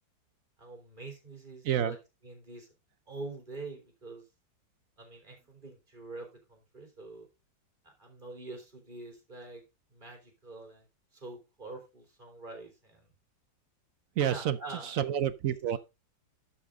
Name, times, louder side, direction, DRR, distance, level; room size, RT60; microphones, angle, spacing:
voice 1, 0.6-2.0 2.2-2.7 3.1-4.2 5.0-7.3 7.8-9.6 9.9-10.9 11.1-13.1 14.2-14.9, right 3 dB, 25° right, 3.5 m, -45 dB
voice 2, 1.6-2.0 14.2-15.8, right 10 dB, 65° right, 0.8 m, -29 dB
12.5 x 5.7 x 3.6 m
omnidirectional pair, 2.1 m